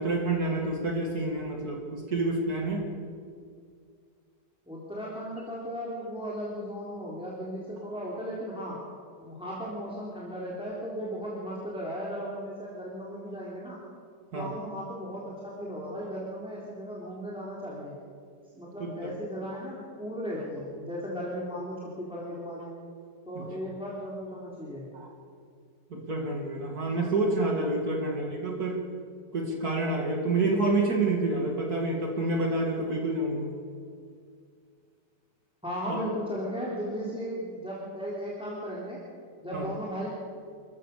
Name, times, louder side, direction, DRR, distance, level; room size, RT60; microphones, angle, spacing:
voice 1, 0.0-2.9 14.3-14.5 18.8-19.1 23.3-23.5 24.9-25.1 25.9-28.8 29.3-33.5 35.9-36.0 39.5-39.7, right 2 dB, 60° right, 1 dB, 3.0 m, -28 dB
voice 2, 4.7-8.8 9.2-13.8 14.3-17.9 18.5-22.7 23.3-24.9 35.6-39.0 39.4-40.1, equal, 5° right, -6 dB, 3.8 m, -36 dB
26.5 x 15.5 x 6.8 m, 2.2 s
omnidirectional pair, 1.8 m